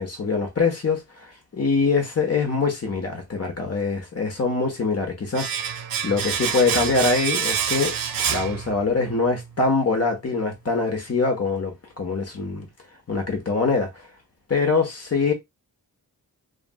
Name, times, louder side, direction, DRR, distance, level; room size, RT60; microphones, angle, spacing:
voice 1, 0.0-7.9 8.3-12.7 13.1-13.9 14.5-15.3, left 4 dB, 45° left, 1.1 m, -24 dB
Domestic sounds home sounds, 5.3-9.2 9.4-9.6, right 8 dB, 65° right, 0.6 m, -27 dB
3.0 x 2.5 x 2.2 m
wide cardioid pair, 80°, 36 cm